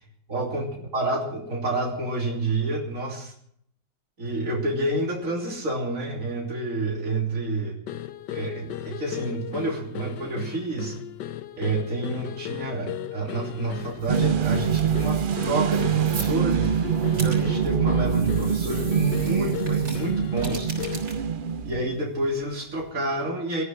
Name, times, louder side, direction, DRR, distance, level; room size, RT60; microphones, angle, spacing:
voice 1, 0.3-0.7 0.9-3.3 4.2-7.8 8.3-11.0 11.6-16.7 17.1-20.7 21.6-23.6, right 2 dB, 45° right, -1 dB, 3.5 m, -29 dB
sound 1, 7.9-21.2, left 11 dB, 75° left, 1.5 m, -36 dB
sound 2, 13.7-22.9, right 3 dB, 70° right, 4.2 m, -42 dB
sound 3, 14.1-22.0, right 8 dB, 90° right, 0.4 m, -24 dB
18.0 x 13.0 x 6.2 m, 0.67 s
omnidirectional pair, 1.9 m